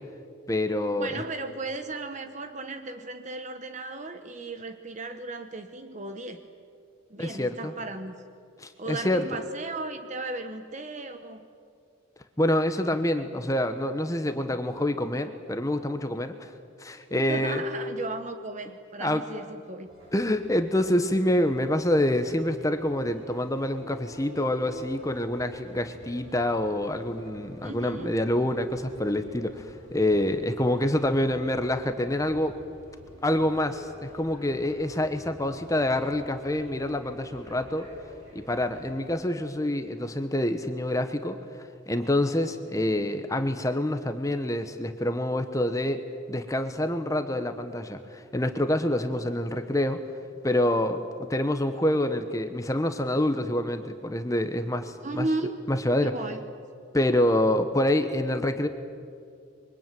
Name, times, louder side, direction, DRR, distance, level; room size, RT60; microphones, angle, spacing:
voice 1, 0.5-1.2 7.2-7.7 8.6-9.3 12.4-16.5 16.8-17.6 19.0-19.2 20.1-32.5 33.2-37.9 38.3-46.0 46.3-50.0 50.4-51.0 51.3-55.3 55.7-56.1 56.9-58.7, left 1 dB, 15° left, 8 dB, 1.0 m, -26 dB
voice 2, 1.0-6.4 7.1-8.2 8.8-11.5 17.1-19.9 27.6-28.1 55.0-55.6 56.0-56.4, right 2 dB, 35° right, 8 dB, 1.2 m, -35 dB
sound 1, 19.8-39.1, equal, 90° right, 8.0 m, -48 dB
26.0 x 23.5 x 9.2 m, 2.3 s
head